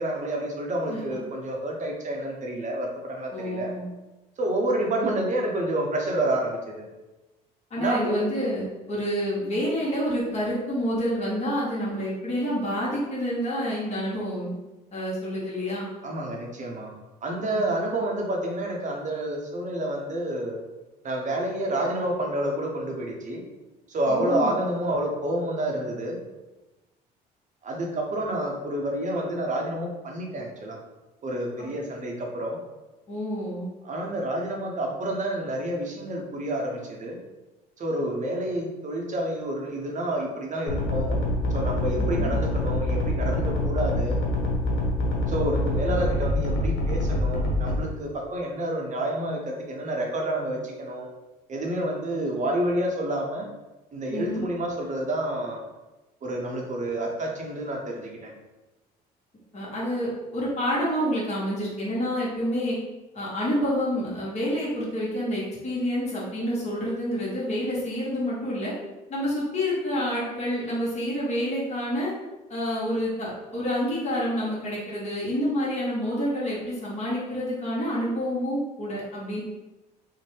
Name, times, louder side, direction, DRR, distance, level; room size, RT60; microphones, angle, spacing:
voice 1, 0.0-3.7 4.4-6.8 7.8-8.2 16.0-16.9 17.2-20.6 21.0-23.4 23.9-26.2 27.6-30.8 31.2-32.6 33.8-37.2 37.8-41.2 41.5-44.2 45.3-51.1 51.5-53.5 53.9-55.6 56.2-58.3, right 1 dB, 35° right, 1 dB, 0.7 m, -29 dB
voice 2, 3.3-3.8 7.7-14.5 14.9-15.9 17.5-17.6 24.1-24.6 33.1-33.7 42.0-42.3 54.1-54.4 59.5-62.7 63.1-68.7 69.1-72.1 72.5-79.4, equal, 30° left, -7 dB, 1.1 m, -28 dB
sound 1, 40.7-47.8, left 1 dB, 65° left, 0.8 m, -25 dB
2.6 x 2.1 x 3.2 m, 1.1 s
hypercardioid pair, 60°, 21 cm